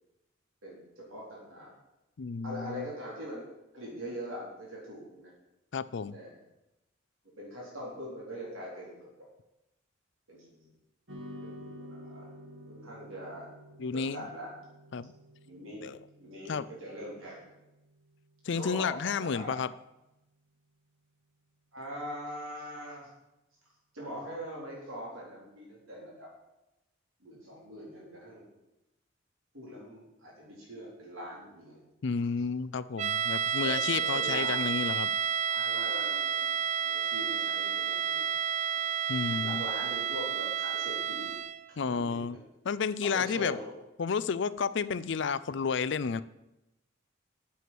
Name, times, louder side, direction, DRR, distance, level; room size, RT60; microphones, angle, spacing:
voice 1, 0.6-1.7 2.4-3.5 3.7-5.3 6.1-6.4 7.2-9.1 10.3-10.7 11.4-12.3 12.7-13.5 13.9-14.5 15.5-15.9 16.2-17.4 18.5-19.6 21.7-23.1 23.9-26.3 27.2-28.5 29.5-31.8 33.6-33.8 34.0-34.6 35.5-38.3 39.2-41.4 41.7-42.4 43.0-43.7, equal, 90° right, -4 dB, 4.1 m, -42 dB
voice 2, 2.2-2.9 5.7-6.2 13.8-14.2 14.9-15.1 15.8-16.0 16.5-16.7 18.4-19.7 32.0-35.1 39.1-39.6 41.8-42.4 42.7-43.6 44.0-46.2, left 5 dB, 60° left, 15 dB, 0.4 m, -31 dB
sound 1, 11.1-19.6, equal, 65° right, 1.9 m, -51 dB
sound 2, 33.0-41.7, right 8 dB, 35° right, 0.3 m, -31 dB
8.4 x 7.7 x 7.7 m, 0.94 s
head